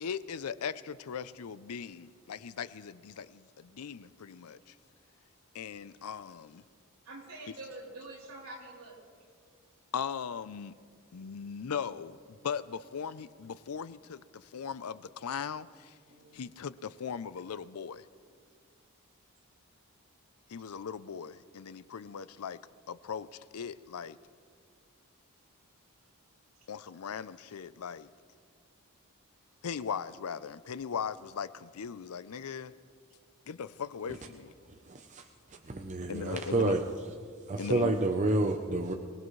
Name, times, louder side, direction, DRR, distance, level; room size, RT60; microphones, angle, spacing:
voice 1, 0.0-4.7 5.5-6.6 7.5-7.6 9.9-10.7 11.1-12.2 12.4-16.0 16.3-18.1 20.5-22.6 22.9-23.3 23.5-24.2 26.7-28.1 29.6-32.7 33.5-34.5 36.1-36.8 37.6-37.9, left 7 dB, 85° left, 16 dB, 0.5 m, -39 dB
voice 2, 7.1-9.0 16.1-16.2, right 2 dB, 75° right, -3 dB, 3.4 m, -46 dB
voice 3, 34.9-35.2 35.7-36.8 37.5-38.9, right 2 dB, 35° right, 4 dB, 0.7 m, -29 dB
24.0 x 18.5 x 3.2 m, 2.1 s
head